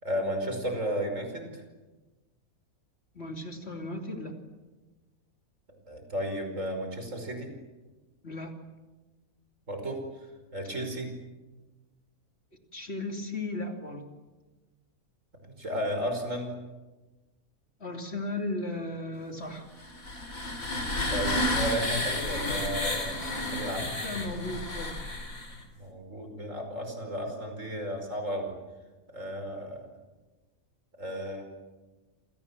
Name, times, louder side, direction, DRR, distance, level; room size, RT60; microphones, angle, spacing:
voice 1, 0.0-1.6 5.9-7.5 9.7-10.0 10.5-11.1 15.4-16.5 21.1-23.9 25.8-28.5 29.1-29.8 31.0-31.4, equal, 55° right, 5 dB, 5.7 m, -33 dB
voice 2, 3.1-4.4 8.2-8.5 12.7-14.0 17.8-19.7 24.0-24.9, left 2 dB, 45° left, 3 dB, 3.1 m, -35 dB
sound 1, 19.8-25.6, left 1 dB, 65° left, 4.6 m, -31 dB
28.0 x 27.5 x 7.3 m, 1.2 s
omnidirectional pair, 1.6 m